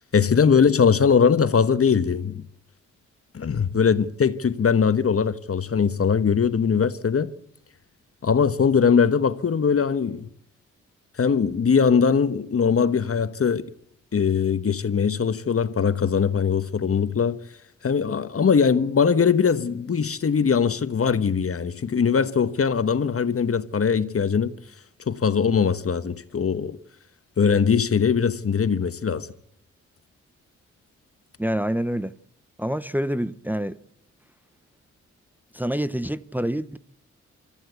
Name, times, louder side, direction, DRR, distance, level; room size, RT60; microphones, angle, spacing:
voice 1, 0.1-2.4 3.3-7.3 8.2-10.3 11.2-13.7 14.1-17.4 17.8-24.5 25.1-26.8 27.4-29.3, left 6 dB, 45° left, 1.3 m, -21 dB
voice 2, 31.4-32.1 32.6-33.8 35.5-36.8, equal, 5° right, 0.9 m, -26 dB
25.0 x 14.5 x 8.3 m
supercardioid pair, 50°, 31 cm